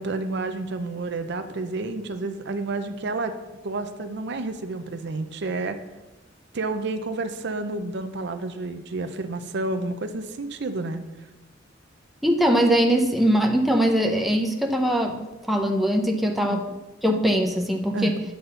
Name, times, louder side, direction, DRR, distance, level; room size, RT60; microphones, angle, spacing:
voice 1, 0.0-3.3 3.6-5.8 6.5-11.0 16.4-16.6 17.9-18.2, right 3 dB, 60° right, 9 dB, 0.6 m, -30 dB
voice 2, 12.2-16.6 17.0-18.1, equal, ahead, 1 dB, 0.7 m, -21 dB
9.3 x 4.0 x 6.8 m, 1.1 s
head